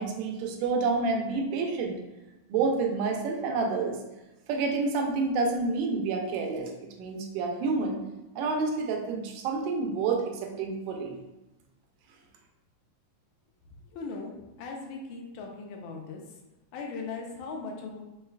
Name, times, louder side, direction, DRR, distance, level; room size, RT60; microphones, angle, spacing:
voice 1, 0.0-2.0 2.5-4.0 4.5-8.0 8.4-11.2, right 4 dB, 85° right, 2 dB, 2.2 m, -29 dB
voice 2, 13.9-14.3 14.6-16.2 16.7-18.0, left 4 dB, 80° left, 1 dB, 1.9 m, -38 dB
5.6 x 3.1 x 2.3 m, 0.99 s
omnidirectional pair, 3.7 m